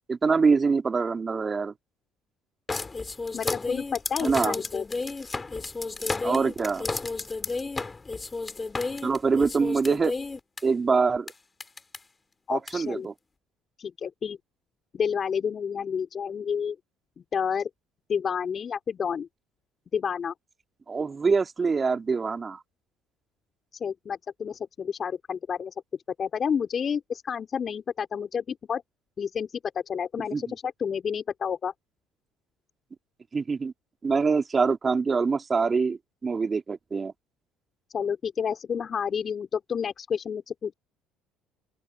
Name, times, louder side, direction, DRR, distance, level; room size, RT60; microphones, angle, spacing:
voice 1, 0.1-1.7 4.2-4.6 6.2-6.9 9.0-10.1 10.6-11.3 12.5-13.1 20.9-22.6 30.3-30.5 33.3-33.7 34.0-37.1, right 5 dB, 30° right, 2.5 m, -24 dB
sound 1, 2.7-10.6 11.3-11.4 11.6-12.0 12.7-12.8, left 3 dB, 25° left, 3.1 m, -32 dB
voice 2, 3.3-4.8 12.5-13.1 13.8-14.4 14.9-16.8 17.2-17.7 18.1-19.3 19.9-20.3 23.8-25.7 26.2-28.8 29.2-29.6 29.9-31.7 37.9-40.7, left 7 dB, 40° left, 3.5 m, -30 dB
open air
hypercardioid pair, 60°, 0 cm